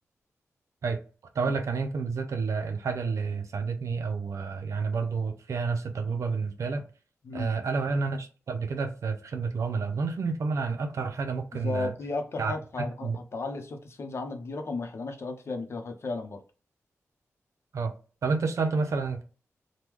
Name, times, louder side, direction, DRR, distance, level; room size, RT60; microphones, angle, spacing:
voice 1, 1.3-6.8 7.3-11.9 12.4-13.2 17.7-17.9 18.2-19.2, right 4 dB, 75° right, 0.6 m, -30 dB
voice 2, 11.5-16.4, left 3 dB, 55° left, 0.7 m, -34 dB
3.0 x 2.2 x 3.5 m
wide cardioid pair, 110°, 5 cm